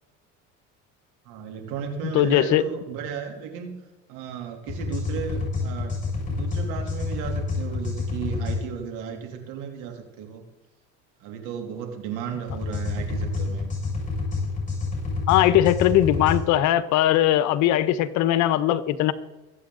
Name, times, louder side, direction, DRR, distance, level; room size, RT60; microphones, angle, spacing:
voice 1, 1.2-5.9 6.3-10.4 11.2-13.7, right 7 dB, 80° right, 3 dB, 3.1 m, -34 dB
voice 2, 2.1-2.6 15.3-19.1, left 13 dB, 65° left, 15 dB, 1.0 m, -20 dB
sound 1, 4.7-8.6 12.5-16.4, left 3 dB, 25° left, 5.8 m, -28 dB
23.0 x 8.4 x 3.9 m, 1.1 s
supercardioid pair, 105°, 31 cm